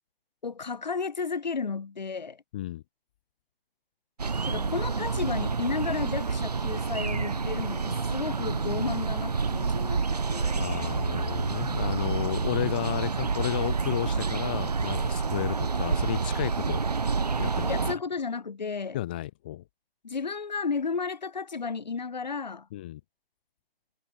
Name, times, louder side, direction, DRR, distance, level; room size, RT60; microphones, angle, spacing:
voice 1, 0.4-2.4 4.4-10.6 17.7-19.0 20.0-22.7, left 5 dB, 45° left, 3.8 m, -33 dB
voice 2, 2.5-2.8 10.5-16.9 17.4-17.9 18.9-19.6 22.7-23.0, left 14 dB, 10° left, 1.3 m, -33 dB
sound 1, 4.2-18.0, right 4 dB, 40° right, 0.9 m, -28 dB
figure-of-eight pair, 165°, 30 cm